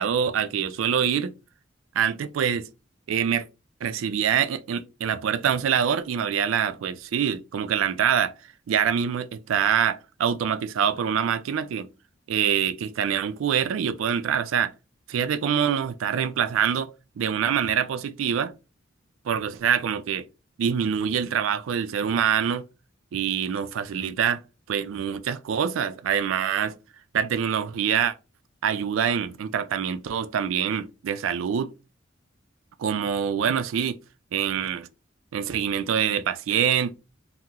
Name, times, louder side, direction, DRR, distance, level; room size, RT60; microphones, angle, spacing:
voice 1, 0.0-1.3 1.9-2.7 3.1-3.5 3.8-8.3 8.7-11.9 12.3-14.7 15.1-18.5 19.2-20.3 20.6-22.6 23.1-24.4 24.7-26.8 27.1-28.2 28.6-31.7 32.8-34.0 34.3-34.9 35.3-36.9, right 8 dB, 85° right, 0.3 m, -25 dB
3.6 x 2.0 x 2.8 m
head